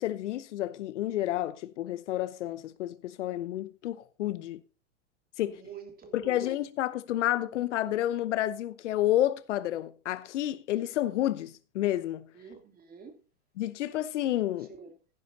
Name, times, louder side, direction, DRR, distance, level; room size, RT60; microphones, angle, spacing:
voice 1, 0.0-4.6 5.4-5.6 6.1-12.3 13.6-14.7, left 13 dB, 70° left, 0.9 m, -30 dB
voice 2, 5.4-6.4 12.3-13.2 14.7-14.9, right 6 dB, 25° right, 2.8 m, -47 dB
15.5 x 10.0 x 2.8 m
hypercardioid pair, 110°, 38 cm